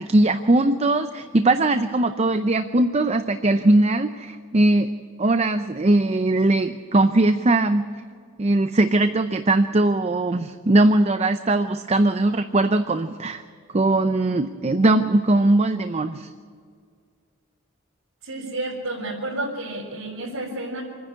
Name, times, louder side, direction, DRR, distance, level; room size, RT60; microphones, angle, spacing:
voice 1, 0.0-4.9 5.2-7.9 8.4-13.4 13.7-16.3, right 2 dB, 30° right, 9 dB, 0.6 m, -20 dB
voice 2, 18.2-20.8, right 2 dB, 85° right, -6 dB, 4.2 m, -30 dB
26.5 x 10.0 x 9.8 m, 2.1 s
head